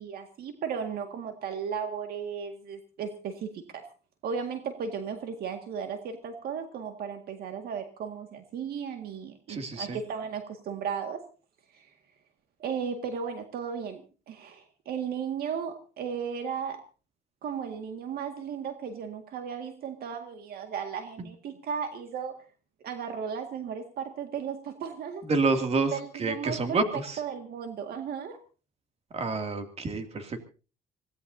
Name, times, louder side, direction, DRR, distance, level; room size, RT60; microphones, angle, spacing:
voice 1, 0.0-3.9 4.2-11.2 11.7-11.9 12.6-16.8 17.4-22.4 22.8-25.3 25.9-26.8 27.2-28.4, right 7 dB, 65° right, 6 dB, 2.0 m, -35 dB
voice 2, 9.5-10.0 25.3-27.2 29.1-30.4, right 3 dB, 40° right, 6 dB, 2.6 m, -28 dB
25.5 x 17.0 x 2.8 m, 0.36 s
cardioid pair, 110°, 17 cm